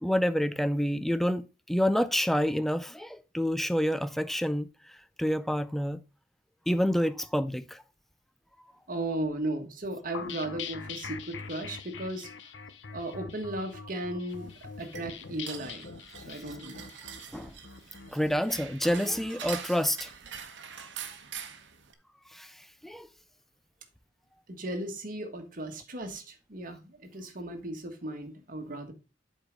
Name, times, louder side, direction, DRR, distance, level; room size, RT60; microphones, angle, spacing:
voice 1, 0.0-4.7 5.2-6.0 6.7-7.8 17.3-17.5 18.1-20.1 22.3-22.6 22.8-23.1, equal, ahead, 0.4 m, -28 dB
voice 2, 8.9-12.3 12.9-14.5 14.8-15.9 16.2-16.9 24.5-28.9, right 1 dB, 45° right, 1.5 m, -36 dB
sound 1, 10.1-19.6, left 5 dB, 70° left, 0.7 m, -43 dB
sound 2, 14.3-21.9, right 7 dB, 65° right, 1.0 m, -44 dB
7.9 x 4.7 x 5.1 m
head